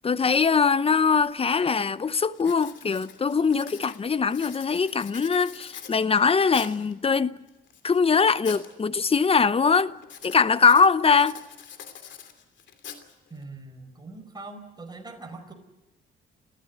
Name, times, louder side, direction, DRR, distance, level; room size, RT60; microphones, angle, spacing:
voice 1, 0.0-7.4 7.8-9.9 10.2-11.4, left 5 dB, 30° left, 0.8 m, -22 dB
Writing, 1.2-1.3 1.8-2.0 2.3-6.9 7.5-8.7 9.0-9.4 10.0-13.4, left 7 dB, 65° left, 3.0 m, -44 dB
voice 2, 13.3-15.5, right 3 dB, 20° right, 4.9 m, -42 dB
29.5 x 14.5 x 9.6 m
cardioid pair, 90°, 20 cm